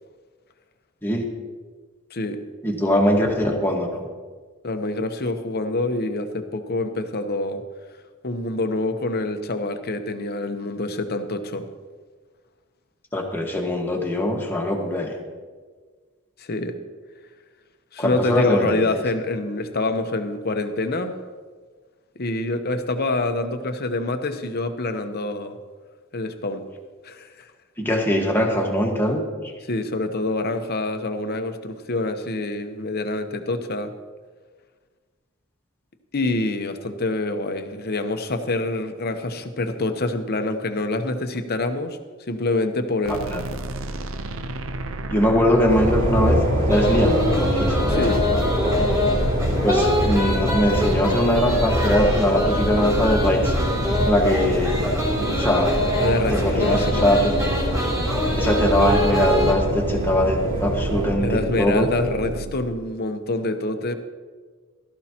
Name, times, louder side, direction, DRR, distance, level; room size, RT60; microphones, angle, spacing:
voice 1, 2.6-4.0 13.1-15.2 18.0-18.9 27.8-29.2 43.1-43.4 45.1-46.4 46.7-48.0 49.6-53.6 54.0-54.9 55.2-55.8 56.3-57.3 58.3-61.9, equal, 10° left, 0 dB, 1.5 m, -21 dB
voice 2, 4.6-7.6 8.2-11.7 16.4-16.8 17.9-21.1 22.2-25.6 26.1-26.6 27.0-27.3 29.7-33.9 36.1-42.0 42.3-43.3 47.9-48.2 56.0-57.1 61.2-63.9, left 2 dB, 50° left, 8 dB, 0.9 m, -26 dB
sound 1, 43.0-62.7, right 2 dB, 70° right, 0.7 m, -31 dB
sound 2, 45.7-61.2, equal, 40° right, 3.9 m, -25 dB
sound 3, 46.7-59.5, left 1 dB, 15° right, 2.7 m, -25 dB
16.0 x 13.0 x 2.9 m, 1.5 s
head